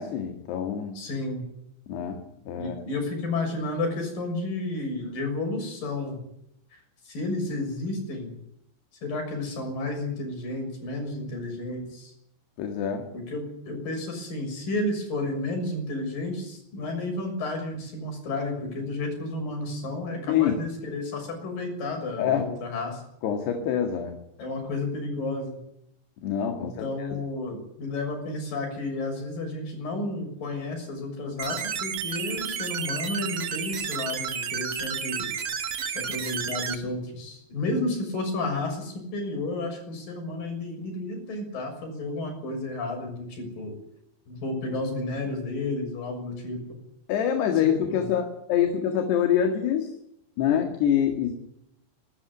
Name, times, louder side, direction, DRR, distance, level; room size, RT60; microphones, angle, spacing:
voice 1, 0.0-1.0 1.9-2.2 2.5-2.8 12.6-13.1 20.3-20.6 22.2-22.5 23.2-24.2 26.2-26.9 47.1-49.9 50.4-51.3, left 9 dB, 70° left, 5 dB, 3.9 m, -25 dB
voice 2, 0.9-1.4 2.6-6.2 7.0-8.3 9.0-12.1 13.3-23.0 24.4-25.6 26.6-35.3 35.9-43.7 44.3-46.6 47.6-48.1, left 2 dB, 50° left, 3 dB, 8.1 m, -32 dB
sound 1, 31.4-36.7, right 7 dB, 85° right, 1.2 m, -31 dB
24.5 x 13.5 x 9.8 m, 0.78 s
omnidirectional pair, 5.2 m